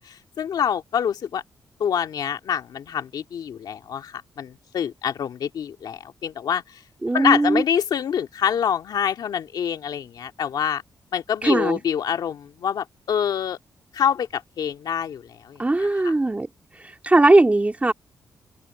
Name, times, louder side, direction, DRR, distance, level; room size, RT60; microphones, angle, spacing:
voice 1, 0.0-1.4 1.8-6.8 7.1-10.8 11.1-13.6 13.9-16.1, left 8 dB, 80° left, 2.0 m, -26 dB
voice 2, 7.0-7.6 11.4-11.8 15.6-16.5 16.8-17.9, right 2 dB, 20° right, 3.0 m, -19 dB
cardioid pair, 80°, 7 cm